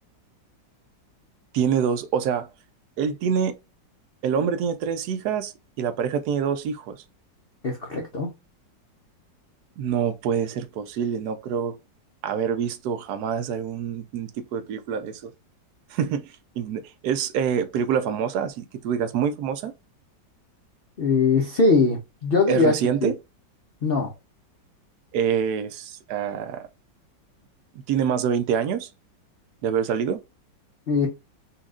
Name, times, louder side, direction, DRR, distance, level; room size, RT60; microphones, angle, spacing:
voice 1, 1.5-2.5 3.0-3.6 4.2-7.0 9.8-11.8 12.2-15.3 15.9-19.7 22.5-23.2 25.1-26.7 27.7-28.9 29.6-30.2, right 7 dB, 70° right, 1.0 m, -26 dB
voice 2, 7.6-8.3 21.0-23.1 23.8-24.1 30.9-31.1, left 3 dB, 60° left, 0.6 m, -21 dB
4.1 x 2.9 x 2.4 m
omnidirectional pair, 2.1 m